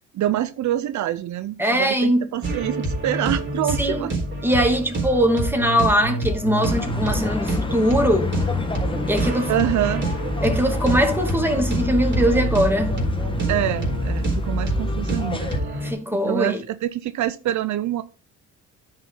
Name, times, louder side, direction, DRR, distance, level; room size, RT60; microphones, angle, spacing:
voice 1, 0.1-4.1 9.5-10.0 13.5-15.8 16.1-18.0, right 12 dB, 70° right, 0.6 m, -26 dB
voice 2, 1.6-2.3 3.8-4.1 4.4-8.3 9.1-9.5 10.4-13.0 15.8-16.6, equal, 5° right, 2.7 m, -21 dB
sound 1, 2.4-15.9, right 2 dB, 40° right, 4.1 m, -27 dB
sound 2, 6.7-15.6, left 2 dB, 15° left, 1.5 m, -27 dB
10.0 x 6.5 x 3.8 m
cardioid pair, 90°, 30 cm